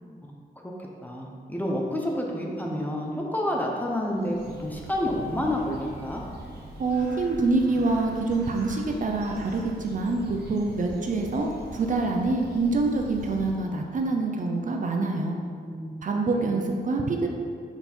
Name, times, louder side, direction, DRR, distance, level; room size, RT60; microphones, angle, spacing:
voice 1, 1.0-6.2 15.7-16.1 16.4-16.6, left 1 dB, 10° left, -1 dB, 0.7 m, -29 dB
Bird, 3.9-14.0, right 1 dB, 80° right, 1.0 m, -43 dB
voice 2, 6.8-15.4 16.0-17.3, right 3 dB, 50° right, 2 dB, 0.6 m, -26 dB
5.7 x 4.2 x 4.3 m, 2.1 s
wide cardioid pair, 145°, 17 cm